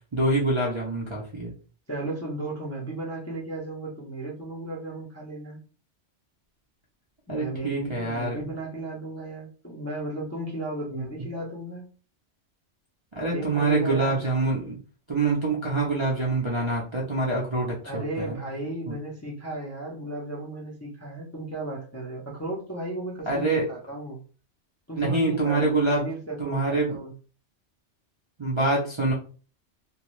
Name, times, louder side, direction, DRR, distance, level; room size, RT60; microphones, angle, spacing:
voice 1, 0.1-1.5 7.3-8.5 10.9-11.1 13.2-14.8 15.1-18.4 18.8-19.0 23.3-23.7 24.9-26.1 26.4-27.0 28.4-29.1, right 2 dB, 35° right, -4 dB, 0.5 m, -25 dB
voice 2, 1.9-5.6 7.3-11.9 13.3-14.2 17.8-24.2 24.9-27.1, right 2 dB, 20° left, -3 dB, 0.4 m, -35 dB
2.6 x 2.2 x 3.1 m, 0.39 s
omnidirectional pair, 1.2 m